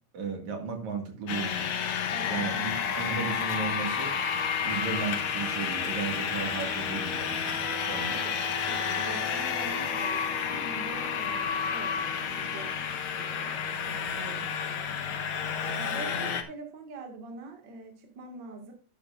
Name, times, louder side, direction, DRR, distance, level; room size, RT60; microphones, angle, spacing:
voice 1, 0.1-1.8 2.3-4.1 4.6-8.1, right 5 dB, 65° right, 2 dB, 3.3 m, -35 dB
sound 1, 1.3-16.4, left 7 dB, 60° left, 1.6 m, -30 dB
voice 2, 8.1-8.4 8.7-12.7 13.1-13.5 13.8-18.7, right 3 dB, 40° right, 2 dB, 2.3 m, -44 dB
12.0 x 10.0 x 2.5 m, 0.36 s
omnidirectional pair, 3.6 m